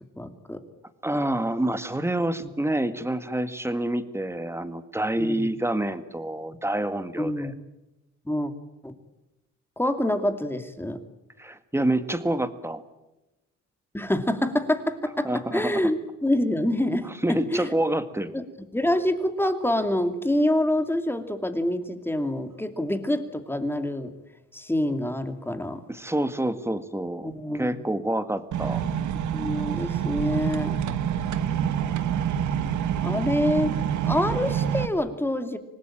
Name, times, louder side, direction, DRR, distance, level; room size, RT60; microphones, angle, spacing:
voice 1, 0.2-0.6 2.4-2.5 5.2-5.5 7.2-7.5 8.2-8.5 8.8-8.9 9.8-11.0 13.9-17.7 18.3-18.4 18.7-24.1 24.5-25.8 27.2-27.7 29.3-30.8 33.0-33.7 34.0-35.6, left 1 dB, 5° left, 8 dB, 2.6 m, -26 dB
voice 2, 1.0-7.5 11.4-12.8 15.2-15.8 17.0-18.4 25.9-28.8, right 1 dB, 10° right, 10 dB, 1.8 m, -27 dB
sound 1, 28.5-34.8, right 9 dB, 75° right, 1.5 m, -27 dB
25.5 x 19.5 x 8.9 m, 0.99 s
cardioid pair, 90°, 30 cm